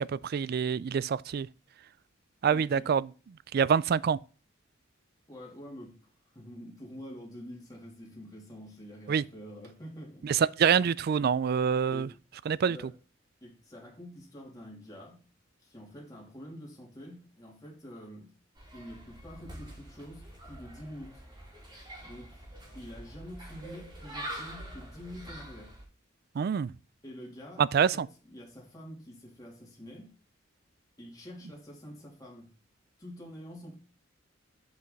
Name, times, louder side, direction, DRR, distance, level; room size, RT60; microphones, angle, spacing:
voice 1, 0.0-1.5 2.4-3.1 3.5-4.2 9.1-9.2 10.2-12.1 12.5-12.8 26.4-26.7 27.6-28.1, right 7 dB, 50° right, 0.3 m, -26 dB
voice 2, 2.5-2.9 5.3-6.0 6.3-10.3 11.9-12.1 12.6-12.9 13.4-15.2 15.6-18.3 18.7-21.2 22.0-22.4 22.7-25.7 27.0-30.1 31.0-32.5 33.0-33.8, equal, 20° left, 3.1 m, -47 dB
sound 1, 18.6-25.8, right 1 dB, 25° right, 3.0 m, -45 dB
7.7 x 5.7 x 4.0 m
head